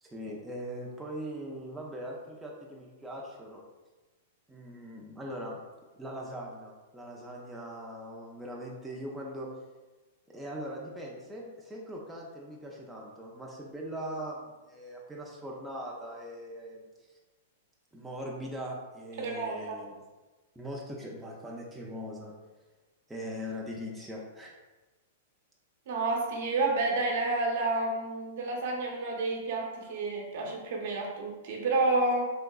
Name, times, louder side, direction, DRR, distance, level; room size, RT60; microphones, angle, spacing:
voice 1, 0.0-3.6 4.5-5.6 6.0-9.5 10.3-16.8 17.9-20.0 20.6-22.3 23.1-24.6, equal, 5° right, -3 dB, 0.3 m, -40 dB
voice 2, 19.2-19.8 25.9-32.3, right 2 dB, 60° right, 0 dB, 0.7 m, -30 dB
3.5 x 2.8 x 2.3 m, 1.2 s
hypercardioid pair, 150°, 0 cm